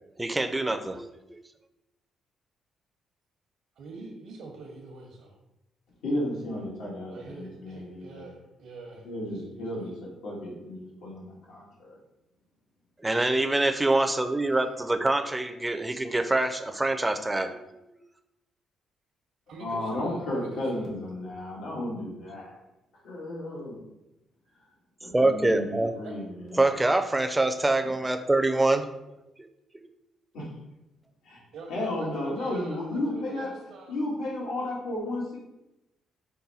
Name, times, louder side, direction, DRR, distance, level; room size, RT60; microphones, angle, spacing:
voice 1, 0.2-1.4 13.0-17.8 25.1-25.9 26.6-28.9 29.4-29.5 29.7-29.9, right 2 dB, 15° right, 7 dB, 0.4 m, -25 dB
voice 2, 3.8-5.3 7.1-9.9 14.5-14.7 19.5-20.9 26.0-26.2 31.5-34.0, right 3 dB, 80° right, -2 dB, 0.9 m, -45 dB
voice 3, 6.0-8.2 9.0-12.0 19.6-22.6 23.0-23.8 25.0-26.6 30.3-30.5 31.2-31.4 31.7-33.5 33.9-35.4, left 1 dB, 90° left, -4 dB, 1.5 m, -33 dB
5.3 x 2.2 x 4.1 m, 0.93 s
cardioid pair, 90°, 0 cm